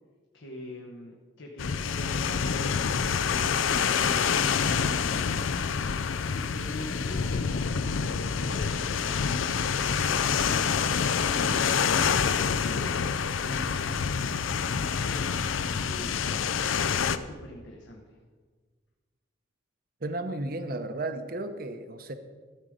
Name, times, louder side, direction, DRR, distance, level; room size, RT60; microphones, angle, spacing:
voice 1, 0.3-2.8 3.2-4.2 4.8-5.7 6.3-12.8 13.3-15.3 15.8-16.1 16.8-18.2, left 1 dB, 70° left, 1 dB, 1.1 m, -44 dB
sound 1, 1.6-17.2, left 6 dB, 90° left, 0.5 m, -27 dB
voice 2, 20.0-22.1, right 2 dB, 50° right, 9 dB, 0.7 m, -33 dB
13.5 x 7.2 x 5.0 m, 1.5 s
head